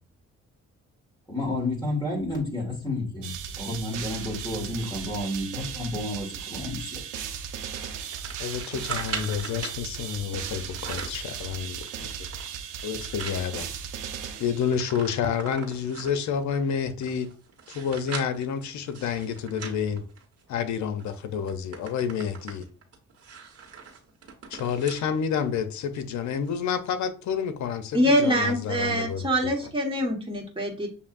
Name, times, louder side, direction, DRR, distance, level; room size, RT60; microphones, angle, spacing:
voice 1, 1.3-7.0, left 1 dB, 15° left, 1.9 m, -31 dB
sound 1, 3.2-15.1, right 8 dB, 90° right, 0.7 m, -37 dB
sound 2, 7.7-9.8 10.5-11.2 11.7-13.4 13.9-14.0 14.2-16.3 16.8-20.6 21.0-21.2 21.5-25.1 25.5-25.6 26.5-26.6, right 6 dB, 55° right, 1.4 m, -40 dB
voice 2, 8.4-11.9 12.8-13.7 14.4-17.3 17.7-20.0 20.5-22.6 24.5-29.3, left 7 dB, 70° left, 0.7 m, -29 dB
voice 3, 27.9-30.9, equal, 15° right, 1.5 m, -24 dB
6.7 x 2.7 x 2.5 m
cardioid pair, 90°, 30 cm